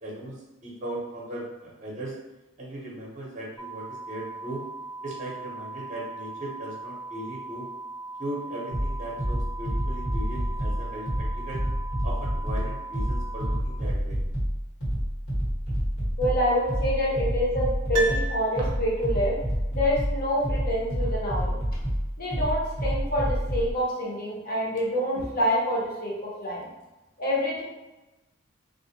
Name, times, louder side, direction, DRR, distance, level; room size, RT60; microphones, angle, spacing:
voice 1, 0.0-2.1 2.6-4.6 5.0-7.7 8.2-11.6 12.0-14.2, right 1 dB, 35° right, -3 dB, 0.6 m, -38 dB
sound 1, 3.6-13.6, right 2 dB, 10° left, 0.5 m, -39 dB
sound 2, 8.7-23.7, equal, 70° left, 1.3 m, -28 dB
voice 2, 16.2-19.3 19.7-21.5 22.2-26.1 26.4-26.7 27.2-27.6, equal, 45° left, -5 dB, 0.8 m, -26 dB
Piano, 17.9-19.2 19.5-19.6, right 1 dB, 80° right, 0.4 m, -32 dB
2.4 x 2.1 x 2.7 m, 1.0 s
head